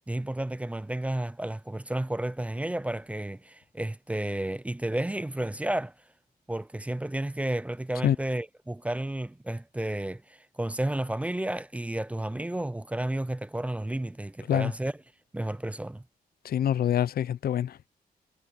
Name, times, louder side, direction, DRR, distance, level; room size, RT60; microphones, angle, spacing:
voice 1, 0.1-5.9 6.5-15.0 15.3-16.0, right 1 dB, 10° right, 0.5 m, -32 dB
voice 2, 16.4-17.9, left 10 dB, 85° left, 0.5 m, -26 dB
wide cardioid pair, 150°, 15 cm